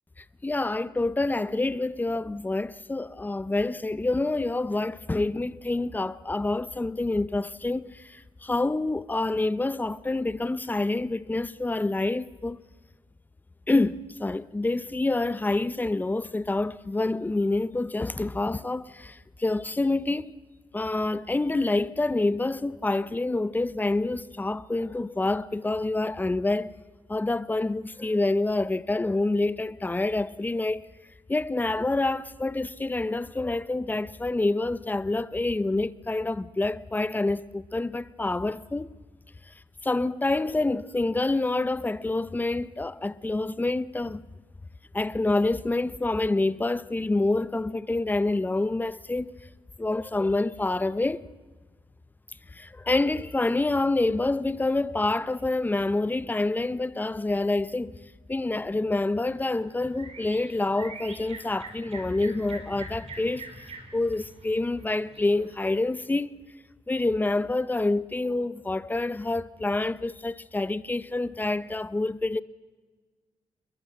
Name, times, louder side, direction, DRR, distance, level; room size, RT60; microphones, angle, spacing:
voice 1, 0.4-12.6 13.7-20.4 20.7-26.7 27.1-30.8 31.3-39.0 39.8-44.2 44.9-49.3 49.8-51.2 52.5-57.9 58.3-66.3 66.9-72.4, left 2 dB, 15° left, 0.7 m, -27 dB
sound 1, 59.3-65.9, right 4 dB, 65° right, 4.6 m, -46 dB
28.0 x 21.5 x 7.5 m
cardioid pair, 110°, 11 cm